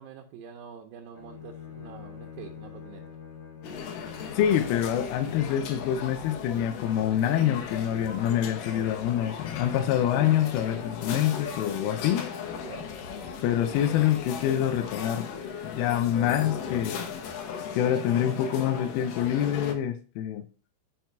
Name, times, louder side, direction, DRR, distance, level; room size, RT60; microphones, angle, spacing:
voice 1, 0.0-3.2 8.6-8.9 12.6-12.9, right 7 dB, 80° right, 2.4 m, -46 dB
Bowed string instrument, 1.1-4.9, left 8 dB, 55° left, 1.5 m, -45 dB
sound 1, 3.6-19.8, left 6 dB, 70° left, 2.4 m, -37 dB
voice 2, 4.3-12.3 13.4-15.3 15.6-17.0 17.7-20.4, left 10 dB, 85° left, 2.6 m, -26 dB
6.1 x 4.6 x 5.6 m
omnidirectional pair, 4.4 m